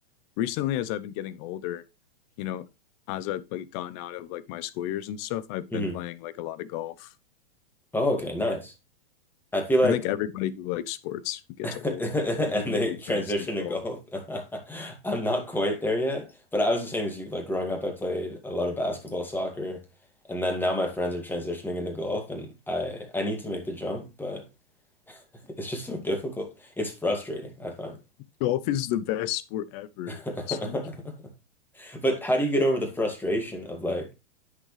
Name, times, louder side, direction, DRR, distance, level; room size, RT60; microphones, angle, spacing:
voice 1, 0.4-1.8 2.4-2.7 3.1-7.1 9.8-12.0 12.5-13.2 13.6-13.8 28.4-30.8, left 12 dB, 40° left, 0.8 m, -32 dB
voice 2, 7.9-8.7 9.5-10.0 11.6-16.3 16.5-19.8 20.3-24.4 25.1-25.2 25.6-28.0 30.1-31.1 31.8-34.1, left 1 dB, 5° left, 2.3 m, -28 dB
9.8 x 6.6 x 3.3 m
hypercardioid pair, 120°, 29 cm